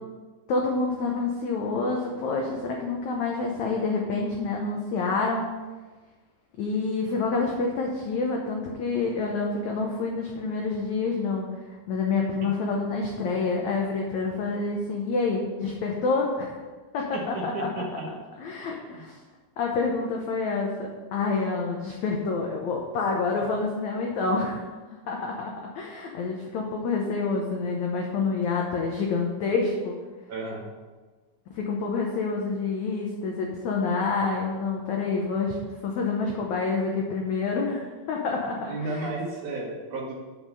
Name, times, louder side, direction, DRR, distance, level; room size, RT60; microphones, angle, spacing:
voice 1, 0.5-5.5 6.6-11.5 11.9-16.6 16.9-18.0 18.4-19.2 19.6-24.6 24.9-30.0 31.5-35.6 35.8-39.1, left 4 dB, 85° left, 0 dB, 1.6 m, -28 dB
voice 2, 17.1-18.1 18.9-19.0 30.3-30.6 38.7-40.1, right 2 dB, 65° right, -2 dB, 2.2 m, -33 dB
7.7 x 5.6 x 6.6 m, 1.3 s
omnidirectional pair, 4.5 m